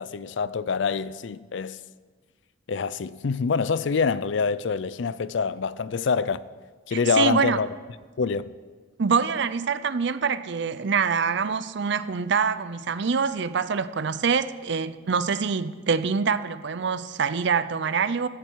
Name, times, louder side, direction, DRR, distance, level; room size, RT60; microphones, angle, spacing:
voice 1, 0.0-1.8 2.7-6.4 6.9-7.7 8.2-8.5, left 5 dB, 65° left, 0.4 m, -26 dB
voice 2, 6.9-7.6 9.0-18.3, right 5 dB, 60° right, 0.5 m, -25 dB
15.5 x 12.5 x 4.7 m
head